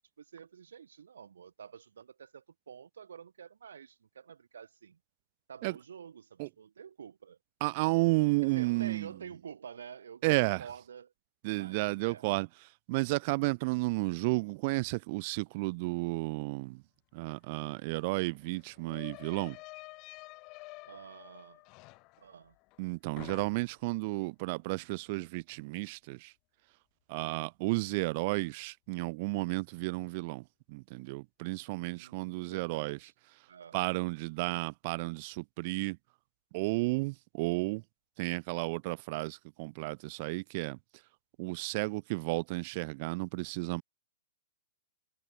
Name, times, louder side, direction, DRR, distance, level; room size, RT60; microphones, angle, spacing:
voice 1, 0.2-5.0 5.5-7.4 8.4-11.1 11.4-12.3 20.9-21.6 22.2-22.5 31.9-33.1 33.5-33.9, right 7 dB, 90° right, 6.7 m, -49 dB
voice 2, 7.6-9.1 10.2-10.6 11.4-12.5 12.9-16.8 17.1-19.6 22.8-26.3 27.1-33.0 33.7-36.0 36.5-37.8 38.2-40.8 41.4-43.8, right 25 dB, 25° right, 0.3 m, -32 dB
sound 1, 17.3-17.4 17.6-22.9 23.2-23.9, left 26 dB, 20° left, 1.8 m, -50 dB
hypercardioid pair, 180°, 0 cm